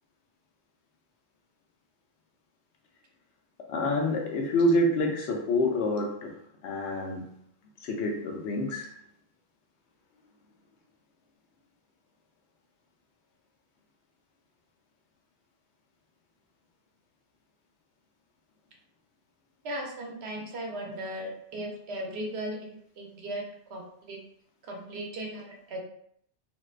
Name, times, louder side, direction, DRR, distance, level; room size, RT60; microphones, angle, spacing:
voice 1, 3.7-7.3 7.8-8.9, left 1 dB, 80° left, 1 dB, 0.9 m, -27 dB
voice 2, 19.6-24.2 24.7-25.8, right 1 dB, 70° right, 0 dB, 0.9 m, -37 dB
2.5 x 2.2 x 2.3 m, 0.67 s
omnidirectional pair, 1.1 m